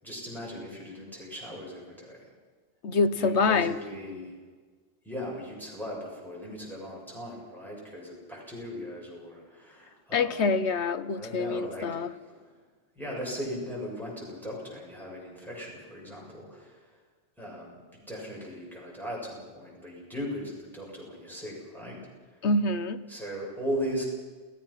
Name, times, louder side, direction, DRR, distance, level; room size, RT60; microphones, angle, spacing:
voice 1, 0.0-2.2 3.1-4.4 5.0-10.6 11.1-12.5 13.0-16.9 17.4-22.0 22.3-22.4 23.1-24.0, equal, ahead, -4 dB, 7.1 m, -38 dB
voice 2, 2.8-3.8 10.1-12.1 22.4-23.0, left 3 dB, 70° left, 12 dB, 1.2 m, -26 dB
29.0 x 16.5 x 5.7 m, 1.5 s
omnidirectional pair, 1.2 m